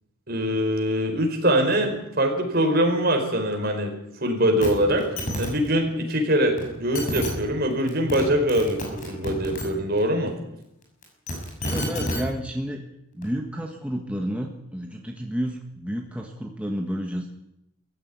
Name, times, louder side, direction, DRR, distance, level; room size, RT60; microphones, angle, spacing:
voice 1, 0.3-3.9 4.2-5.1 5.4-10.4, equal, 45° right, 3 dB, 4.6 m, -23 dB
sound 1, 4.6-4.7 5.0-5.5 6.6-6.7 6.9-7.3 7.9-8.2 8.5-9.6 11.0-12.2 13.2-13.3, left 1 dB, 35° left, 6.3 m, -29 dB
voice 2, 11.6-12.8 13.1-17.3, equal, 5° right, 1 dB, 1.5 m, -31 dB
18.5 x 15.0 x 9.5 m, 0.83 s
head